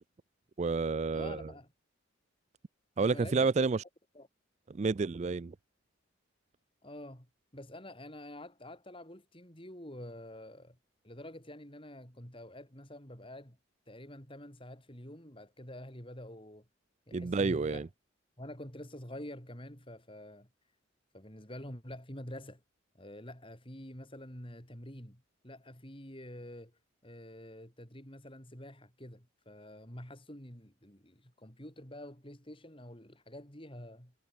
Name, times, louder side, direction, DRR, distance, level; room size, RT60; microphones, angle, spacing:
voice 1, 0.6-1.5 3.0-3.8 4.7-5.5 17.1-17.9, right 4 dB, 35° right, 0.4 m, -30 dB
voice 2, 1.1-1.7 3.0-3.7 4.1-4.3 6.8-10.8 11.0-13.6 13.9-16.7 17.1-17.9 18.4-20.5 21.1-22.6 22.9-34.1, left 1 dB, 25° left, 6.5 m, -47 dB
head